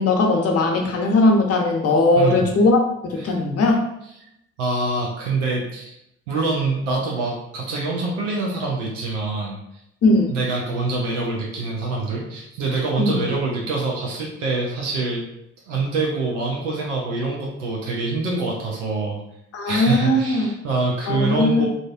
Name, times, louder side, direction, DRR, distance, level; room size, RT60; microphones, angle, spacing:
voice 1, 0.0-3.8 10.0-10.3 13.0-13.2 19.5-20.5 21.1-21.7, left 2 dB, 45° left, 1 dB, 0.7 m, -19 dB
voice 2, 2.2-2.5 3.2-3.3 4.6-5.9 6.3-9.6 10.3-15.2 15.7-19.2 19.7-21.7, right 3 dB, 90° right, -3 dB, 0.5 m, -25 dB
2.5 x 2.0 x 2.4 m, 0.81 s
hypercardioid pair, 50°, 35 cm